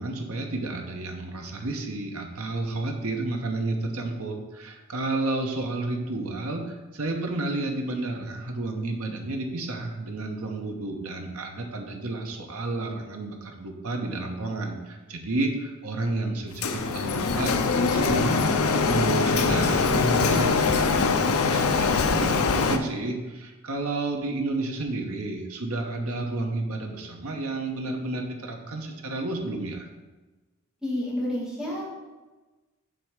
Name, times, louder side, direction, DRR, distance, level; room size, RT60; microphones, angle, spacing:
voice 1, 0.0-29.9, right 2 dB, 80° right, 2 dB, 1.0 m, -31 dB
Printer, 16.6-22.8, left 4 dB, 75° left, 0.6 m, -23 dB
voice 2, 30.8-31.9, left 1 dB, 5° right, -6 dB, 2.0 m, -29 dB
7.7 x 3.5 x 6.5 m, 1.2 s
head